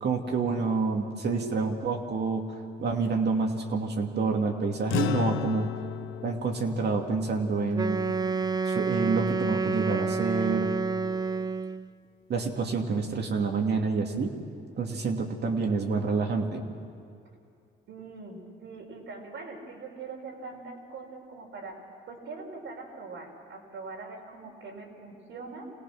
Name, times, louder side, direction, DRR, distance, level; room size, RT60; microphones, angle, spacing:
voice 1, 0.0-5.7 6.2-8.1 8.6-10.7 12.3-14.4 14.8-16.6, right 4 dB, 55° right, 2 dB, 2.4 m, -28 dB
sound 1, 4.9-9.6, left 11 dB, 90° left, 0.7 m, -35 dB
Wind instrument woodwind instrument, 7.7-11.9, right 4 dB, 20° right, 0.5 m, -29 dB
voice 2, 17.9-21.8 22.1-25.6, right 3 dB, 75° right, 0 dB, 4.6 m, -42 dB
26.5 x 18.0 x 6.2 m, 2.4 s
cardioid pair, 90°, 20 cm